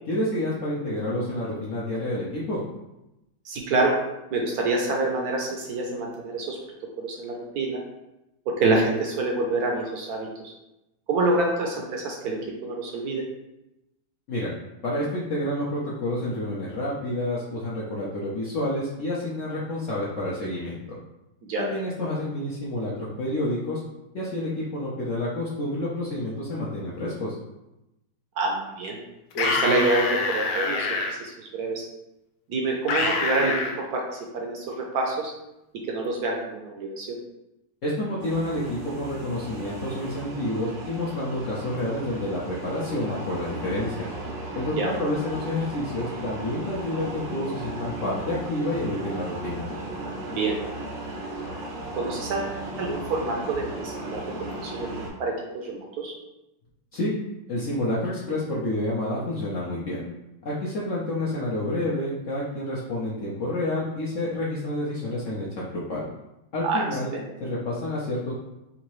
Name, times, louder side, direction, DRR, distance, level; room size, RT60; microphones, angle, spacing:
voice 1, 0.1-2.6 14.3-14.5 14.8-21.0 21.5-23.8 24.1-27.3 37.8-44.1 44.5-49.6 56.9-57.1 57.5-60.0 60.4-66.1 66.5-67.1 67.4-68.3, left 1 dB, 65° left, -6 dB, 0.8 m, -29 dB
voice 2, 3.4-3.9 4.3-6.6 7.0-7.8 8.6-10.5 11.1-12.4 12.6-13.2 21.4-21.7 28.4-29.0 29.4-31.8 32.5-33.5 33.9-34.0 34.3-35.3 35.9-37.2 44.8-44.9 50.3-50.5 51.9-54.2 54.6-56.1 66.6-66.8 67.1-67.2, right 2 dB, 70° right, 0 dB, 1.0 m, -27 dB
sound 1, 29.3-31.1 32.9-33.7, left 3 dB, 85° left, 1.3 m, -25 dB
sound 2, 38.2-55.1, right 2 dB, 85° right, 1.5 m, -36 dB
3.9 x 2.6 x 3.0 m, 0.93 s
omnidirectional pair, 2.0 m